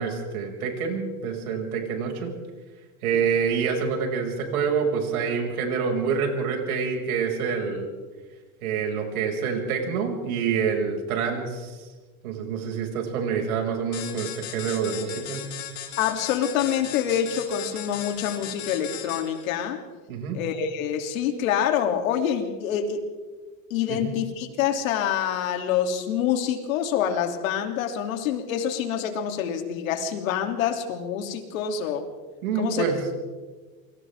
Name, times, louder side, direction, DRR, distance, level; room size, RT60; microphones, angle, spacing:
voice 1, 0.0-2.3 3.0-7.9 8.6-11.8 12.2-15.5 20.1-20.4 23.9-24.1 32.4-33.0, right 6 dB, 80° right, 2 dB, 6.4 m, -27 dB
sound 1, 13.9-19.5, left 11 dB, 40° left, 3.4 m, -37 dB
voice 2, 16.0-19.8 20.3-23.1 23.7-32.1 32.5-32.8, left 9 dB, 70° left, 5 dB, 3.1 m, -26 dB
29.0 x 25.0 x 3.7 m, 1.3 s
supercardioid pair, 170°, 42 cm